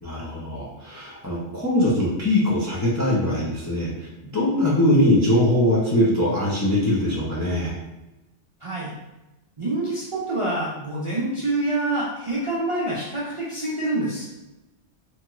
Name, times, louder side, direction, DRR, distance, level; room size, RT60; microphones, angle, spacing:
voice 1, 0.0-7.7, left 1 dB, 25° left, -6 dB, 0.4 m, -22 dB
voice 2, 8.6-8.9 9.6-14.3, right 2 dB, 45° right, -7 dB, 0.4 m, -26 dB
2.9 x 2.3 x 2.9 m, 1.0 s
omnidirectional pair, 1.2 m